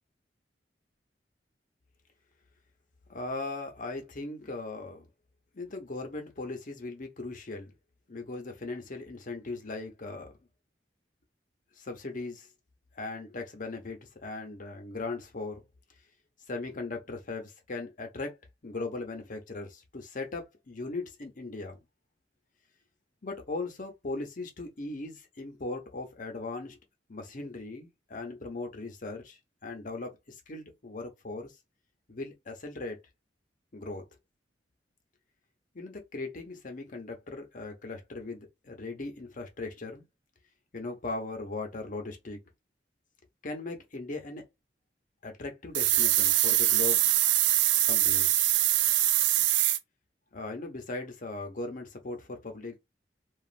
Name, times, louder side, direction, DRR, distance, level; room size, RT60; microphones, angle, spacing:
voice 1, 3.1-5.1 5.5-7.7 8.1-10.4 11.8-12.5 12.9-15.6 16.5-18.4 18.6-21.8 23.2-26.8 27.1-31.5 32.1-33.0 33.7-34.0 35.7-40.0 40.7-42.4 43.4-44.4 45.2-47.1 47.9-48.3 50.3-52.7, left 3 dB, 50° left, 0.8 m, -38 dB
sound 1, 45.7-49.8, right 13 dB, 80° right, 0.4 m, -23 dB
3.1 x 2.4 x 2.4 m
head